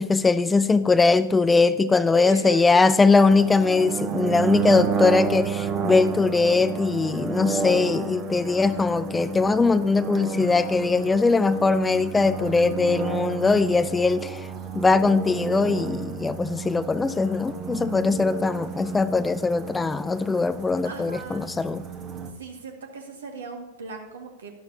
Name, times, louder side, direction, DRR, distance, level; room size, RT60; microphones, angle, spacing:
voice 1, 0.0-14.4 14.7-21.8, left 4 dB, 10° left, 14 dB, 0.4 m, -21 dB
voice 2, 2.2-3.0 20.8-21.5 22.4-24.5, right 4 dB, 65° right, 3 dB, 1.9 m, -37 dB
sound 1, 3.3-22.3, right 5 dB, 30° right, 1.3 m, -31 dB
12.0 x 11.5 x 2.8 m, 1.1 s
figure-of-eight pair, 90°, 0 cm